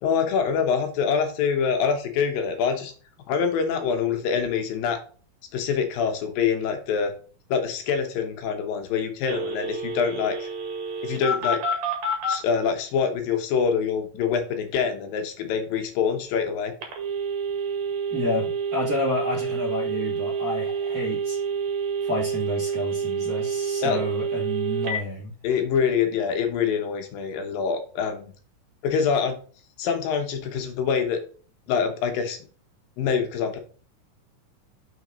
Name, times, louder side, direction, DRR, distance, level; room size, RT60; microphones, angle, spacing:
voice 1, 0.0-2.9 3.3-5.0 5.5-7.1 7.5-10.5 11.0-11.6 12.3-16.7 23.8-24.0 25.4-28.3 28.8-29.4 29.8-31.2 31.7-32.4 33.0-33.6, left 6 dB, 80° left, 6 dB, 2.9 m, -25 dB
Telephone, 9.3-12.4 16.8-25.0, right 4 dB, 55° right, 3.0 m, -28 dB
voice 2, 18.1-21.4 22.0-25.3, left 2 dB, 30° right, -3 dB, 2.6 m, -30 dB
6.5 x 6.2 x 3.9 m, 0.41 s
omnidirectional pair, 4.0 m